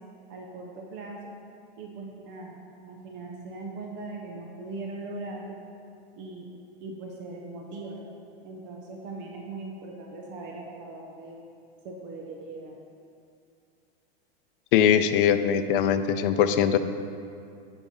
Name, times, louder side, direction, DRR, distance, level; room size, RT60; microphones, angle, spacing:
voice 1, 0.3-1.3 1.8-2.6 2.8-5.6 6.1-6.5 6.8-8.1 8.4-11.4 11.8-12.8, right 3 dB, 35° right, 0 dB, 1.0 m, -40 dB
voice 2, 14.7-16.8, left 9 dB, 55° left, 10 dB, 0.6 m, -21 dB
10.5 x 4.6 x 5.5 m, 2.5 s
supercardioid pair, 150°, 31 cm